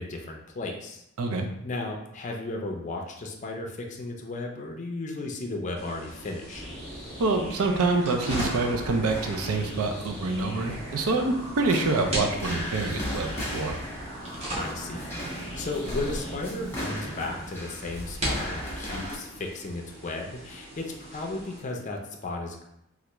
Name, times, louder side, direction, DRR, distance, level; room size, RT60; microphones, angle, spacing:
voice 1, 0.0-1.0 1.6-6.6 14.6-22.6, left 2 dB, 35° left, 1 dB, 0.4 m, -35 dB
sound 1, 5.8-21.6, right 1 dB, 30° right, 0.9 m, -39 dB
sound 2, 6.5-16.3, equal, 60° right, 1.2 m, -40 dB
voice 2, 7.2-13.8, right 3 dB, 75° right, 4 dB, 0.5 m, -26 dB
sound 3, 8.3-19.2, equal, 10° left, 0.8 m, -37 dB
3.3 x 2.4 x 3.0 m, 0.79 s
head